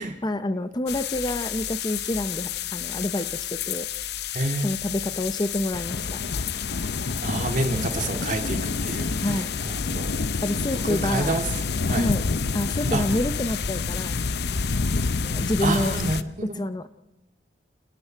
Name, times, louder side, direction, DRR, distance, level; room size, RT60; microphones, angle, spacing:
voice 1, 0.0-3.9 4.6-6.2 9.2-9.5 10.4-11.4 11.9-12.2 12.5-14.2 15.2-16.0 16.5-16.9, left 1 dB, 25° left, 12 dB, 0.7 m, -28 dB
sound 1, 0.9-16.2, left 5 dB, 65° left, 0.7 m, -28 dB
voice 2, 4.3-4.7 6.8-10.2 10.7-11.5 11.9-12.1 12.9-13.1 15.6-16.6, right 2 dB, 45° right, 5 dB, 2.3 m, -28 dB
30.0 x 19.0 x 4.6 m, 0.98 s
head